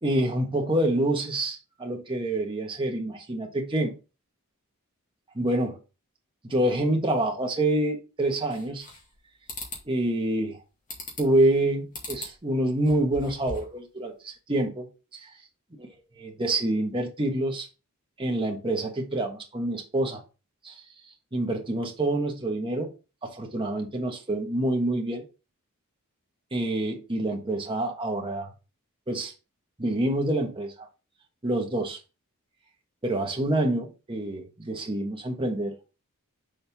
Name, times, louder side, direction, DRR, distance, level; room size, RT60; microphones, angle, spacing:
voice 1, 0.0-3.9 5.3-5.8 6.4-8.9 9.8-10.6 11.2-14.9 15.1-15.3 16.2-17.7 18.2-20.2 20.6-20.8 21.3-22.9 23.2-25.2 26.5-28.5 29.1-29.3 29.8-30.9 31.4-32.0 33.0-35.7, right 1 dB, 25° right, 1.3 m, -27 dB
sound 1, 8.5-9.2 9.5-9.8 10.9-11.4 11.9-12.4 12.7-13.8, left 2 dB, 40° left, 1.9 m, -39 dB
6.5 x 4.3 x 3.5 m
head